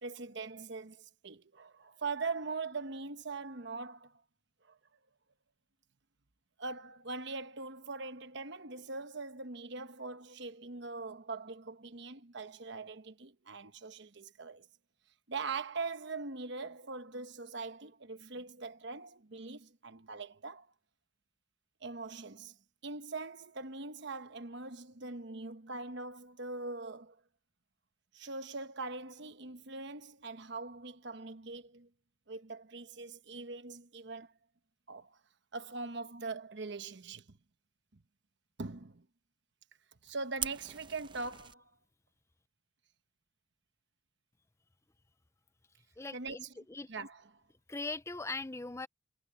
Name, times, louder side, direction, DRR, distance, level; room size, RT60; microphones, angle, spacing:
voice 1, 0.0-4.2 4.7-4.8 6.6-14.7 15.3-20.7 21.8-22.6 22.8-27.2 28.1-31.9 32.3-34.3 34.9-35.2 35.5-37.4 38.6-39.1 40.0-41.7 46.1-46.5 46.9-47.4, right 3 dB, 60° right, 1.1 m, -42 dB
Fire, 40.4-41.5, right 8 dB, 25° right, 0.7 m, -41 dB
voice 2, 46.0-46.9 47.7-48.9, left 3 dB, 15° left, 0.5 m, -40 dB
head